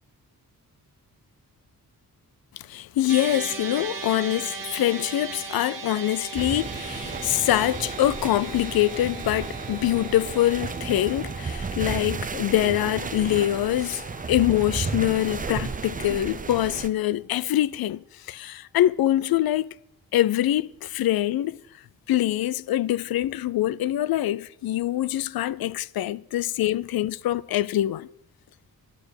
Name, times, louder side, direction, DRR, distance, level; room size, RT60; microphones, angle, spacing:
voice 1, 2.5-14.0 14.3-19.7 20.1-21.6 22.1-28.1, left 13 dB, 80° left, 0.5 m, -24 dB
sound 1, 3.1-15.5, right 5 dB, 65° right, 1.6 m, -39 dB
sound 2, 6.4-16.9, right 5 dB, 25° right, 0.5 m, -33 dB
sound 3, 7.9-17.5, right 1 dB, 25° left, 1.6 m, -47 dB
11.5 x 6.8 x 8.0 m
wide cardioid pair, 165°, 35 cm